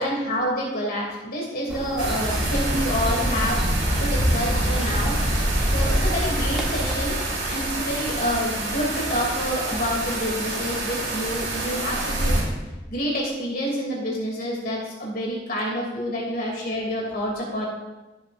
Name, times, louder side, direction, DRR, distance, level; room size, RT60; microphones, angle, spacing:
voice 1, 0.0-3.6 4.0-5.1 5.6-7.2 7.5-12.5 12.9-17.7, equal, 55° left, -3 dB, 3.0 m, -28 dB
sound 1, 1.7-6.9, equal, ahead, 1.4 m, -28 dB
sound 2, 2.0-12.4, right 1 dB, 75° right, 3.9 m, -26 dB
16.0 x 8.5 x 2.7 m, 1.1 s
head